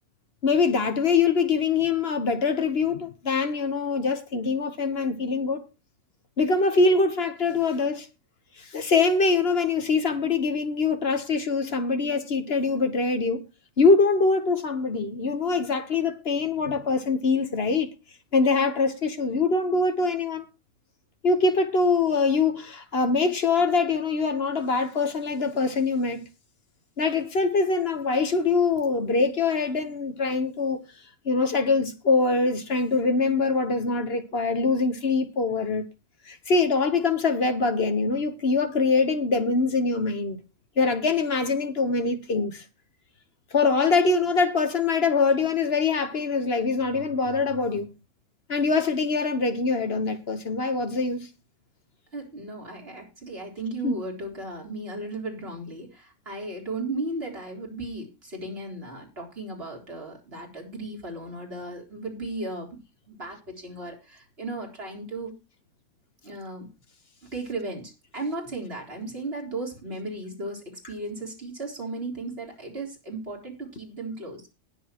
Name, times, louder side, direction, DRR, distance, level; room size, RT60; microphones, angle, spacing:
voice 1, 0.4-5.6 6.4-8.1 8.6-13.4 13.8-17.9 18.3-20.5 21.2-26.3 27.0-30.8 31.2-35.9 36.3-40.4 40.8-42.6 43.5-47.9 48.5-51.3 53.8-53.9, left 4 dB, 55° left, 1.4 m, -23 dB
voice 2, 52.1-62.8 63.1-65.4 66.2-66.7 67.3-74.4, right 2 dB, 50° right, 4.1 m, -35 dB
19.5 x 7.1 x 3.0 m
omnidirectional pair, 1.3 m